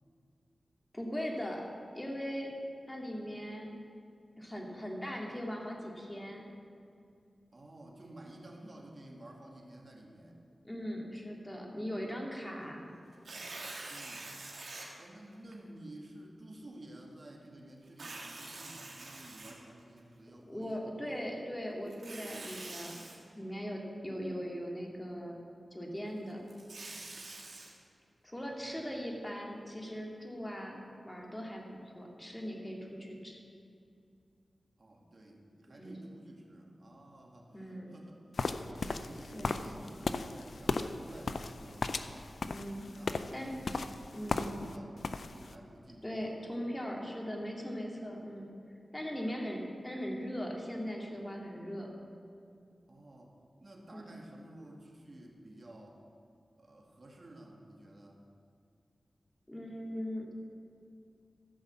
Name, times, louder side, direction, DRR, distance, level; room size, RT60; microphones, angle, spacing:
voice 1, 0.9-1.7 1.9-2.5 2.9-3.7 4.4-6.4 10.6-12.8 20.5-22.9 23.4-25.4 25.7-26.4 28.2-30.8 31.0-33.4 35.8-36.0 37.5-37.9 39.3-39.5 42.4-42.9 43.3-43.5 44.1-44.6 46.0-48.5 48.9-51.9 53.9-54.2 59.5-60.3, equal, 15° left, -1 dB, 2.1 m, -39 dB
voice 2, 7.5-10.4 13.9-14.3 14.9-21.3 28.4-28.8 34.8-42.4 42.9-46.4 52.9-56.0 56.6-58.3, right 1 dB, 50° right, 0 dB, 1.9 m, -52 dB
Tearing, 13.1-14.9 15.5-15.6 17.9-20.0 21.9-23.2 26.3-27.7, right 2 dB, 75° right, 2.1 m, -45 dB
sound 1, 38.4-44.8 45.0-45.5, left 3 dB, 70° left, 0.5 m, -36 dB
14.0 x 5.6 x 7.4 m, 2.4 s
wide cardioid pair, 65°, 0 cm